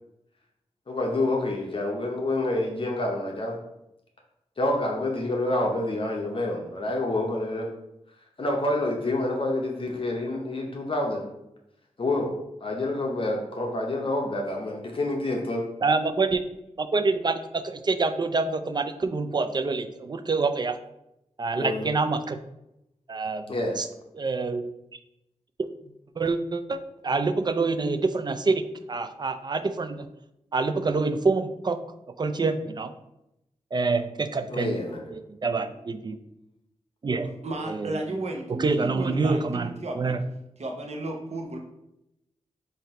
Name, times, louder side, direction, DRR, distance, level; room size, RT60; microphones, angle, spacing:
voice 1, 0.9-3.6 4.6-7.7 8.4-11.2 12.0-12.3 12.6-15.6 21.6-21.8 23.5-23.7 34.5-35.1, left 2 dB, 50° left, 0 dB, 0.7 m, -27 dB
voice 2, 15.8-16.4 16.8-20.8 21.4-22.4 23.1-23.9 24.2-24.7 25.6-25.7 26.2-28.6 28.9-30.1 30.5-31.8 32.1-32.9 33.7-34.8 35.1-36.2 37.0-37.3 37.6-38.0 38.6-39.7 40.0-40.2, right 3 dB, 35° right, 9 dB, 0.4 m, -26 dB
voice 3, 37.4-40.2 40.6-41.6, right 2 dB, 65° right, 1 dB, 0.8 m, -34 dB
3.8 x 2.7 x 4.2 m, 0.86 s
cardioid pair, 65°, 12 cm